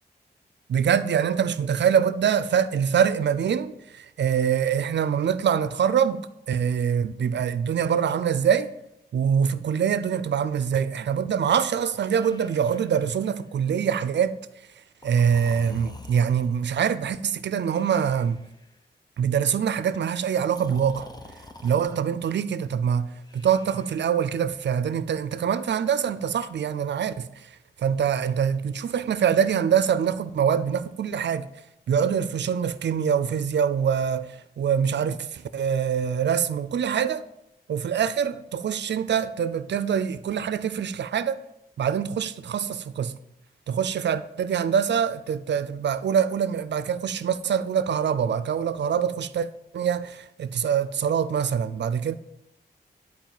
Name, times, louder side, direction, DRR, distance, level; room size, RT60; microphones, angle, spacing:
voice 1, 0.7-8.7 9.1-14.4 15.0-18.4 19.2-21.1 21.6-23.1 23.3-27.3 27.8-31.5 31.9-37.2 37.7-41.4 41.8-43.1 43.7-49.5 49.7-52.2, right 8 dB, 85° right, 0.6 m, -24 dB
Breathing, 12.0-13.6 15.0-16.7 17.7-18.7 20.5-21.9 23.2-24.4, left 2 dB, 20° left, 1.0 m, -47 dB
10.5 x 4.7 x 7.5 m
wide cardioid pair, 85°, 18 cm